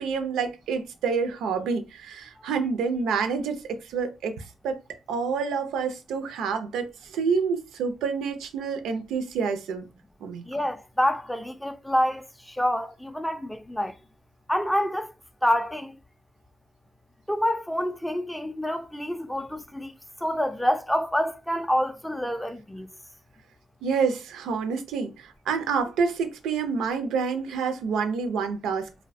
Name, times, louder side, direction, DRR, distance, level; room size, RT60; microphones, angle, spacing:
voice 1, 0.0-4.8 5.1-9.9 10.2-10.6 23.8-28.9, right 5 dB, 80° right, 0.4 m, -28 dB
voice 2, 10.5-13.9 14.5-15.1 15.4-15.9 17.3-19.9 20.2-22.9, equal, 5° left, 0.3 m, -27 dB
2.6 x 2.1 x 2.5 m
cardioid pair, 90°, 0 cm